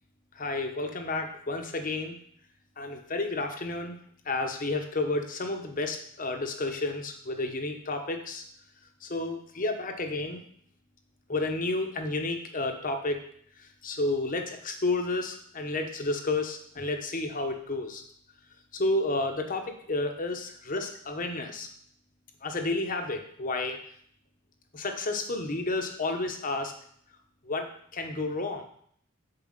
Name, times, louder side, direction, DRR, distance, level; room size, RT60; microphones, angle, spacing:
voice 1, 0.4-2.2 2.8-4.0 4.2-8.4 9.0-10.4 11.3-13.2 13.6-18.0 18.7-21.7 22.4-23.8 24.7-26.7 27.4-28.7, left 2 dB, 40° left, 5 dB, 1.0 m, -31 dB
7.0 x 4.8 x 6.5 m, 0.64 s
head